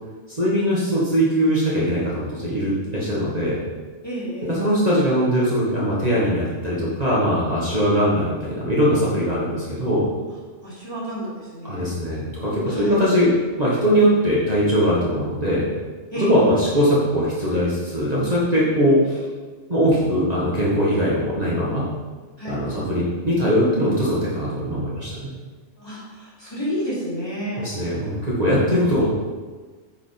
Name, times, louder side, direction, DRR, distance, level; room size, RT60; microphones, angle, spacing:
voice 1, 0.3-3.6 4.5-10.1 11.6-13.3 13.6-15.7 16.2-19.2 19.7-21.9 22.4-25.3 27.6-29.1, equal, 35° right, -7 dB, 1.8 m, -21 dB
voice 2, 4.0-4.6 10.6-11.9 12.7-13.0 16.1-16.6 22.4-22.6 25.8-28.0, equal, 20° left, -8 dB, 3.1 m, -30 dB
8.9 x 5.5 x 5.2 m, 1.4 s
omnidirectional pair, 1.3 m